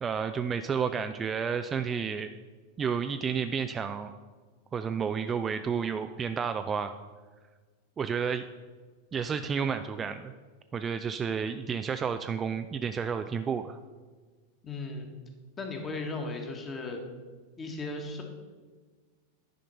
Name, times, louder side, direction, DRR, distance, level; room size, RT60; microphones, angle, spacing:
voice 1, 0.0-2.3 2.8-4.1 4.7-6.9 8.0-8.4 9.1-10.3 10.7-13.8, right 6 dB, 20° right, 9 dB, 0.3 m, -31 dB
voice 2, 14.6-15.2 15.6-17.0 17.6-18.2, left 3 dB, 20° left, 3 dB, 1.6 m, -36 dB
10.0 x 5.1 x 5.7 m, 1.4 s
figure-of-eight pair, 90°, 0 cm